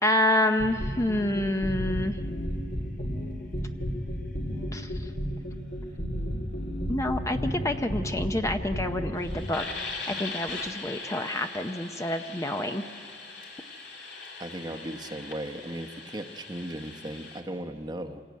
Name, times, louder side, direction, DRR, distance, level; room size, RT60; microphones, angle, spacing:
voice 1, 0.0-2.2 4.7-5.1 6.9-12.8, left 1 dB, 15° left, 7 dB, 0.6 m, -28 dB
sound 1, 0.6-17.4, equal, 75° left, 3.0 m, -35 dB
voice 2, 14.4-18.2, right 1 dB, 25° right, 5 dB, 0.9 m, -37 dB
26.5 x 16.5 x 9.3 m, 2.3 s
head